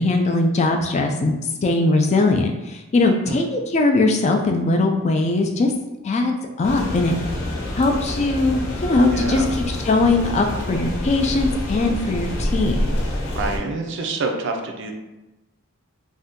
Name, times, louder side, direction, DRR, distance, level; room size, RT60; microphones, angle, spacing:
voice 1, 0.0-1.3 1.6-5.7 6.0-7.2 7.8-9.4 9.9-12.9, left 2 dB, 30° left, 3 dB, 0.3 m, -20 dB
sound 1, 6.6-13.6, left 1 dB, 65° left, 0.7 m, -27 dB
voice 2, 9.1-9.5 13.3-14.9, right 3 dB, 55° right, 3 dB, 0.4 m, -27 dB
2.6 x 2.2 x 3.5 m, 1.0 s
head